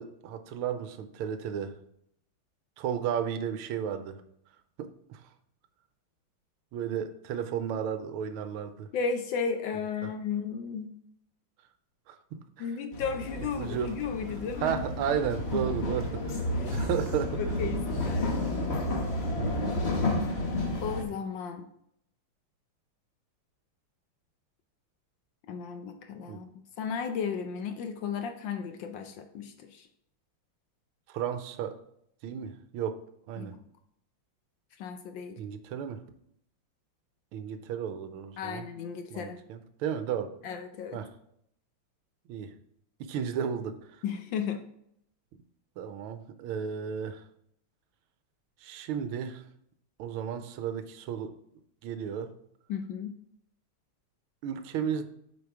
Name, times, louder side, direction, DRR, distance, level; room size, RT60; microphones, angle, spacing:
voice 1, 0.0-1.8 2.8-4.2 4.8-5.2 6.7-8.9 10.0-10.1 12.1-12.7 13.4-13.9 14.6-16.2 16.7-17.4 19.3-19.5 26.3-26.4 31.1-31.8 32.2-33.0 33.3-33.6 35.4-36.0 37.3-38.7 39.1-40.3 40.9-41.1 42.3-42.5 43.0-43.8 45.8-47.2 48.6-49.4 50.0-51.3 51.8-52.3 54.4-55.1, right 8 dB, 85° right, 10 dB, 1.5 m, -33 dB
voice 2, 8.9-10.9 12.6-14.8 15.5-15.9 16.3-16.9 17.4-18.3 20.0-20.2 20.8-21.7 25.5-26.5 26.8-29.9 33.4-33.6 34.8-35.4 38.4-39.4 40.4-41.0 44.0-44.6 52.7-53.2, left 6 dB, 70° left, 6 dB, 1.2 m, -34 dB
sound 1, 12.9-21.0, left 1 dB, 45° left, 0.9 m, -31 dB
8.0 x 4.7 x 3.5 m, 0.72 s
omnidirectional pair, 2.4 m